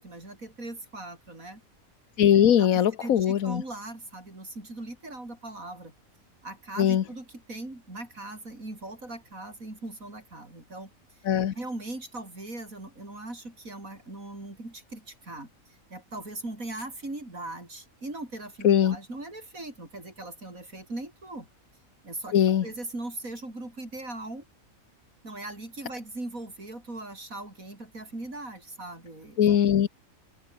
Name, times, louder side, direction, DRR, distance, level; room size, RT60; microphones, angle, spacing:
voice 1, 0.0-1.6 2.6-5.9 6.4-10.9 11.6-21.5 22.0-24.5 25.2-29.6, right 2 dB, 80° right, 7.0 m, -40 dB
voice 2, 2.2-3.6 6.8-7.0 11.3-11.5 18.6-19.0 22.3-22.6 29.4-29.9, left 9 dB, 80° left, 1.4 m, -21 dB
omnidirectional pair, 1.4 m